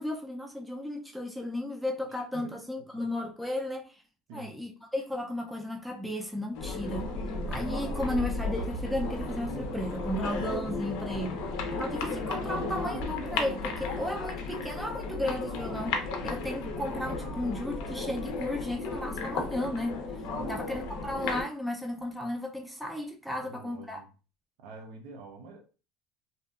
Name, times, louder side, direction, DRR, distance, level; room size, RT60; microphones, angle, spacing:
voice 1, 0.0-3.9 4.3-7.1 7.5-20.0 20.5-24.0, left 1 dB, ahead, 0.3 m, -34 dB
sound 1, 6.5-21.4, left 3 dB, 70° left, 0.5 m, -34 dB
voice 2, 20.2-20.7 21.0-21.2 23.4-24.0 24.6-25.6, right 3 dB, 65° right, 0.5 m, -47 dB
2.6 x 2.3 x 2.3 m
cardioid pair, 155°, 0 cm